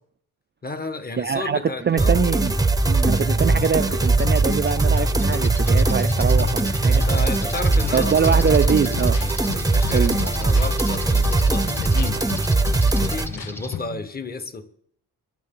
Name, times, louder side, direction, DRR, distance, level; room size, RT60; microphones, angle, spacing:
voice 1, 0.6-2.2 6.9-8.4 9.4-12.3 12.9-14.7, left 2 dB, 25° left, 9 dB, 1.3 m, -32 dB
voice 2, 1.2-2.5 2.9-7.0 7.9-9.2 9.9-10.2, right 7 dB, 30° right, 9 dB, 0.4 m, -23 dB
sound 1, 1.9-13.8, equal, 5° left, 1.1 m, -30 dB
Weird electronic loop, 2.0-13.3, right 2 dB, 10° right, 0.8 m, -20 dB
sound 2, 8.4-14.1, left 11 dB, 60° left, 0.7 m, -36 dB
22.0 x 11.0 x 3.8 m, 0.66 s
wide cardioid pair, 155°, 38 cm